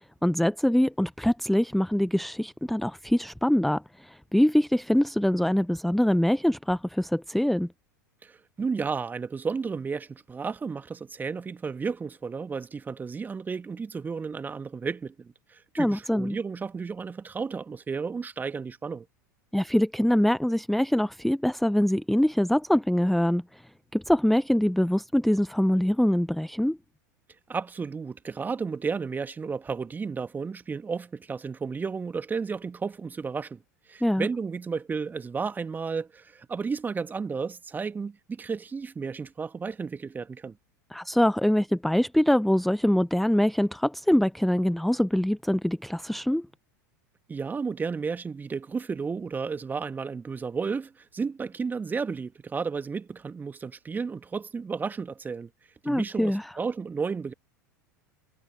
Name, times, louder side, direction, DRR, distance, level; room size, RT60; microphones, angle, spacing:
voice 1, 0.0-7.7 15.8-16.4 19.5-23.6 23.9-26.8 34.0-34.3 40.9-46.5 55.8-56.5, equal, ahead, 0.8 m, -24 dB
voice 2, 8.2-19.1 27.5-33.6 33.9-40.6 47.3-55.5 55.8-57.3, right 5 dB, 20° right, 1.9 m, -33 dB
figure-of-eight pair, 85°, 10 cm